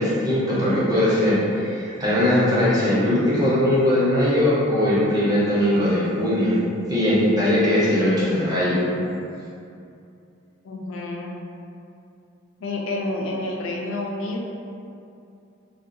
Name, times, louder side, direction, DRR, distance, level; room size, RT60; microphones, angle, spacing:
voice 1, 0.0-6.6 6.9-8.8, left 1 dB, 20° right, -9 dB, 0.6 m, -20 dB
voice 2, 10.6-11.4 12.6-14.4, left 2 dB, 70° left, -1 dB, 0.4 m, -29 dB
3.5 x 2.2 x 2.6 m, 2.6 s
head